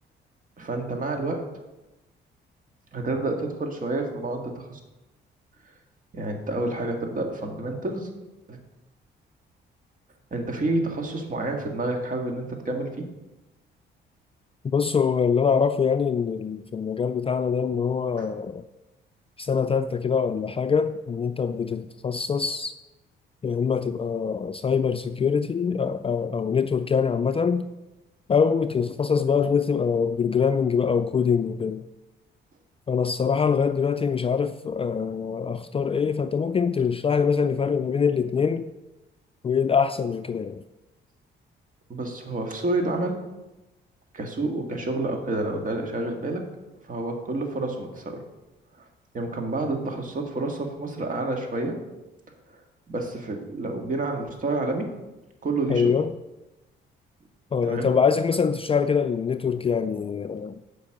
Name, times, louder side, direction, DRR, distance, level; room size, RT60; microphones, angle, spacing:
voice 1, 0.6-1.4 2.9-4.8 6.1-8.1 8.5-8.6 10.3-13.1 18.2-18.3 41.9-43.2 44.1-46.4 46.8-48.2 49.1-51.8 52.5-52.6 52.9-54.9 55.4-56.0 57.6-57.9, right 2 dB, 40° right, 1.8 m, -29 dB
voice 2, 14.7-18.6 19.4-22.7 23.4-27.7 28.3-31.8 32.9-38.7 39.4-40.6 55.7-56.1 57.5-60.6, left 6 dB, 30° left, 0.4 m, -24 dB
8.6 x 5.3 x 6.5 m
cardioid pair, 90°, 20 cm